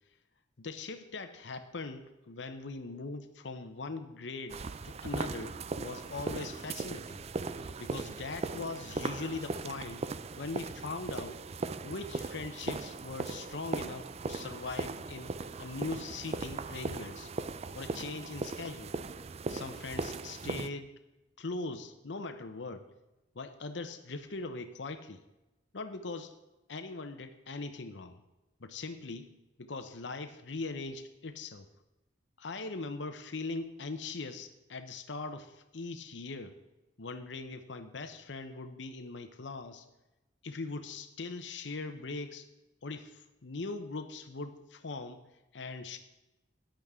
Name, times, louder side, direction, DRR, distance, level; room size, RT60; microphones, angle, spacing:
voice 1, 0.6-7.2 7.8-10.1 10.4-11.4 11.8-17.3 17.7-19.0 19.5-20.9 21.4-22.9 23.3-25.2 25.7-26.4 26.7-28.2 28.6-29.3 29.6-31.7 32.4-36.5 37.0-39.8 40.4-42.5 42.8-45.2 45.5-46.0, left 3 dB, 80° left, 8 dB, 0.8 m, -41 dB
sound 1, 4.5-20.7, right 3 dB, 35° right, 0.4 m, -38 dB
13.5 x 10.0 x 3.7 m, 1.0 s
head